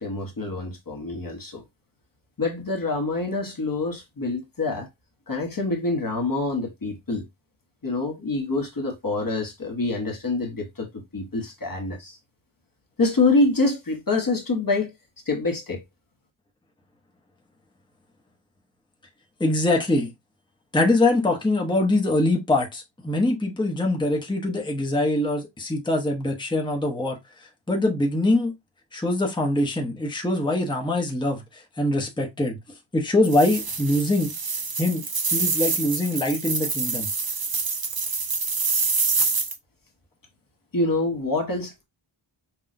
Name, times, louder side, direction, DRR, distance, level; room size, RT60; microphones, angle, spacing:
voice 1, 0.0-1.6 2.4-4.9 5.3-7.3 7.8-12.2 13.0-14.9 15.3-15.8 40.7-41.8, left 3 dB, 45° left, 1.0 m, -26 dB
voice 2, 19.4-20.1 20.7-27.2 27.7-28.5 28.9-31.4 31.8-32.6 32.9-34.3 34.8-37.1, left 2 dB, 10° left, 0.8 m, -23 dB
sound 1, 33.2-39.5, right 5 dB, 50° right, 0.8 m, -26 dB
5.8 x 2.3 x 2.5 m
wide cardioid pair, 105°, 49 cm